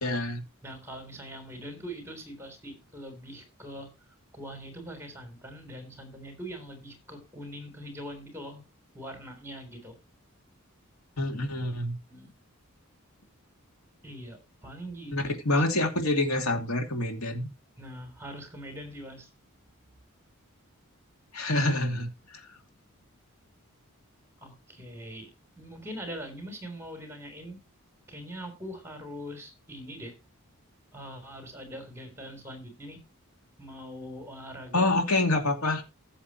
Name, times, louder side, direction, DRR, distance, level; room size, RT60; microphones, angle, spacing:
voice 1, 0.0-0.4 11.2-12.0 15.1-17.5 21.3-22.1 34.7-35.8, left 2 dB, 80° left, 2.7 m, -26 dB
voice 2, 0.6-3.9 4.3-8.6 8.9-9.9 12.1-12.3 14.0-15.3 17.8-19.3 24.4-25.3 25.6-27.6 28.1-30.1 30.9-33.0 33.6-34.8, equal, 10° right, 3.6 m, -42 dB
16.0 x 7.4 x 3.0 m
head